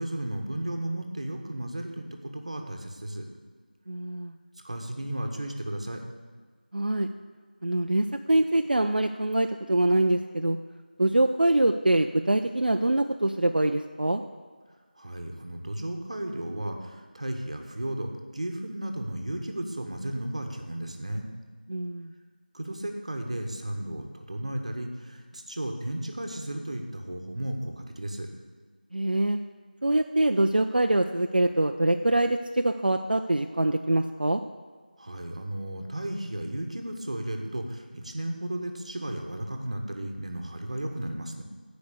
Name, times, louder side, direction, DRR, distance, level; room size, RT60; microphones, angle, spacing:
voice 1, 0.0-3.3 4.6-6.0 15.0-21.3 22.5-28.3 35.0-41.4, right 1 dB, 40° right, 4 dB, 1.2 m, -34 dB
voice 2, 3.9-4.3 6.7-7.1 7.6-10.6 11.0-14.2 21.7-22.1 28.9-29.4 29.8-34.4, right 1 dB, 70° right, 5 dB, 0.5 m, -24 dB
15.0 x 5.2 x 6.9 m, 1.5 s
figure-of-eight pair, 175°, 5 cm